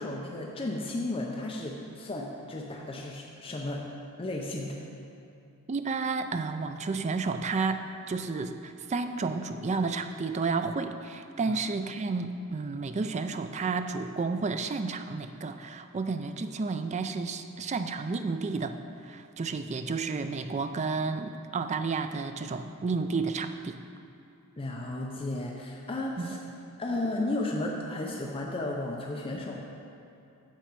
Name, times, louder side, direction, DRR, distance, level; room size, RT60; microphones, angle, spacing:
voice 1, 0.0-3.8 4.2-4.8 11.5-11.6 24.6-26.4 26.8-29.6, left 2 dB, 25° left, -1 dB, 0.6 m, -34 dB
voice 2, 5.7-7.8 8.1-18.8 19.0-23.8 26.2-26.3, right 4 dB, 30° right, 8 dB, 0.4 m, -31 dB
8.9 x 6.9 x 4.6 m, 2.7 s
head